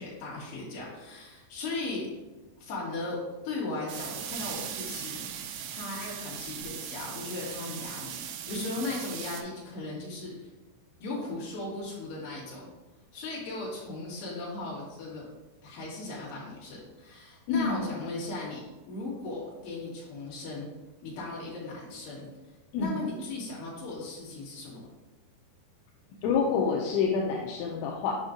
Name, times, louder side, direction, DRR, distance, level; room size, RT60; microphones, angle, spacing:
voice 1, 0.0-2.1 2.6-3.2 3.4-5.3 5.7-10.5 11.0-12.7 13.1-15.3 15.6-18.6 18.9-20.7 21.0-22.3 22.8-24.9, left 2 dB, 55° left, -7 dB, 3.4 m, -37 dB
sound 1, 3.9-9.4, right 8 dB, 85° right, 3.0 m, -39 dB
voice 2, 17.5-17.9 22.7-23.0 26.2-28.2, left 5 dB, 85° left, -1 dB, 2.8 m, -27 dB
8.0 x 5.5 x 2.5 m, 1.1 s
omnidirectional pair, 5.5 m